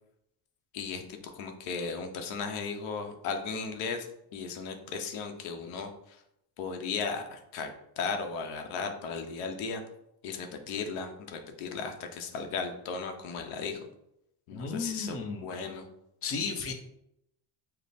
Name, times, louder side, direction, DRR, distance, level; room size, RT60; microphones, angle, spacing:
voice 1, 0.7-4.1 4.3-6.2 6.6-7.7 8.0-9.8 10.2-13.9 14.5-15.9, left 5 dB, 90° left, 5 dB, 0.8 m, -36 dB
voice 2, 14.5-15.5 16.2-16.7, left 5 dB, 30° left, 4 dB, 0.6 m, -34 dB
5.1 x 2.1 x 4.2 m, 0.80 s
cardioid pair, 115°, 47 cm